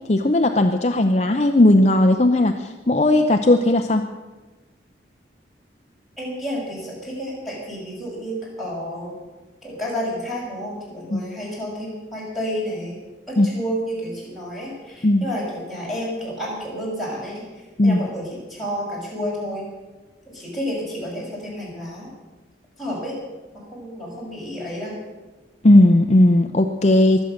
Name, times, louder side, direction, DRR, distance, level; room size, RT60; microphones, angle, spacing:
voice 1, 0.1-4.0 11.1-11.2 13.4-13.5 15.0-15.2 17.8-18.0 25.6-27.2, left 1 dB, 35° left, 5 dB, 0.7 m, -16 dB
voice 2, 6.2-9.1 9.6-13.0 13.3-17.4 17.8-19.6 20.3-22.1 22.8-23.1 23.7-24.9, equal, ahead, -5 dB, 6.3 m, -30 dB
23.5 x 8.3 x 6.6 m, 1.2 s
head